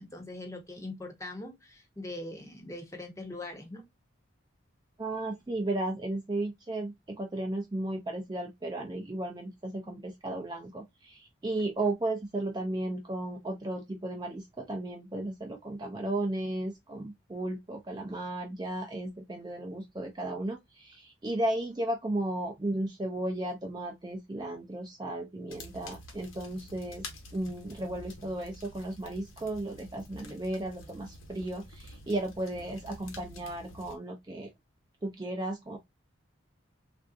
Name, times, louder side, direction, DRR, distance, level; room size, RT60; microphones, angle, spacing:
voice 1, 0.0-3.8, left 2 dB, 15° left, 0.7 m, -41 dB
voice 2, 5.0-27.0 27.3-34.5 35.0-35.8, right 1 dB, 20° right, 0.4 m, -34 dB
sound 1, 25.5-34.0, left 2 dB, 85° left, 1.0 m, -48 dB
3.5 x 2.5 x 2.4 m
head